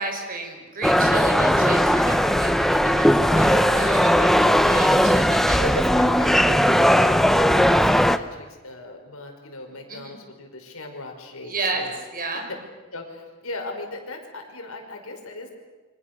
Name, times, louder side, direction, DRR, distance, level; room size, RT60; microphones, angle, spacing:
voice 1, 0.0-5.6 9.9-10.2 11.4-11.8 12.1-12.4, right 3 dB, 40° right, 3 dB, 5.3 m, -32 dB
sound 1, 0.8-8.2, equal, ahead, 0.7 m, -18 dB
voice 2, 3.1-4.7 5.0-5.2 5.6-11.9 12.3-12.6 12.9-15.5, left 2 dB, 80° left, 3 dB, 5.2 m, -37 dB
28.0 x 25.0 x 6.7 m, 1.3 s
head